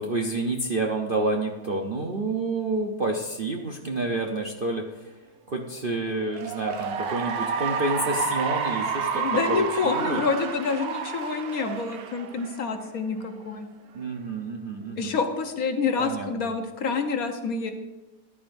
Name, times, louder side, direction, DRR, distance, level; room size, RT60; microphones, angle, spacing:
voice 1, 0.0-5.1 5.5-9.2 9.5-10.2 13.9-15.2 16.0-16.3, right 2 dB, 50° right, 1 dB, 0.7 m, -29 dB
Cheering / Applause, 6.2-12.9, right 6 dB, 65° right, 1.2 m, -30 dB
voice 2, 9.1-13.7 15.0-17.7, left 5 dB, 60° left, 6 dB, 1.2 m, -27 dB
13.5 x 11.0 x 2.6 m, 1.1 s
omnidirectional pair, 1.9 m